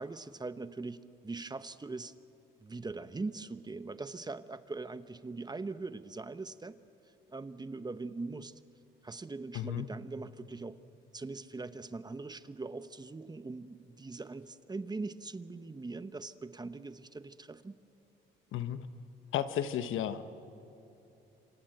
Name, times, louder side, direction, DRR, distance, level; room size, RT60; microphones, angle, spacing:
voice 1, 0.0-2.1 2.6-6.8 7.3-8.5 9.0-10.8 11.1-17.7, right 3 dB, 20° right, 12 dB, 0.9 m, -41 dB
voice 2, 9.5-9.9 18.5-18.8 19.3-20.2, left 10 dB, 85° left, 10 dB, 1.2 m, -33 dB
27.0 x 26.0 x 7.9 m, 2.9 s
cardioid pair, 90°, 20 cm